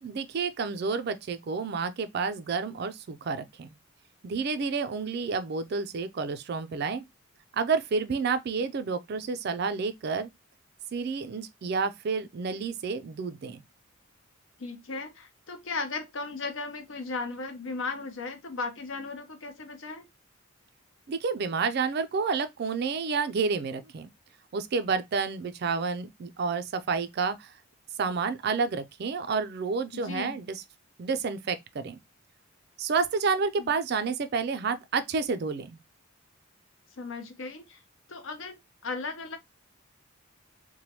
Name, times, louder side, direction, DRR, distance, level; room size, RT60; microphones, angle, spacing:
voice 1, 0.0-3.7 4.2-7.0 7.5-10.3 10.9-13.6 21.1-24.1 24.5-27.5 28.0-30.6 31.0-32.0 32.8-35.8, right 5 dB, 50° right, 0.3 m, -30 dB
voice 2, 14.6-20.1 29.9-30.4 33.6-33.7 37.0-37.8 38.1-39.4, left 3 dB, 65° left, 0.7 m, -36 dB
3.1 x 2.2 x 2.8 m
head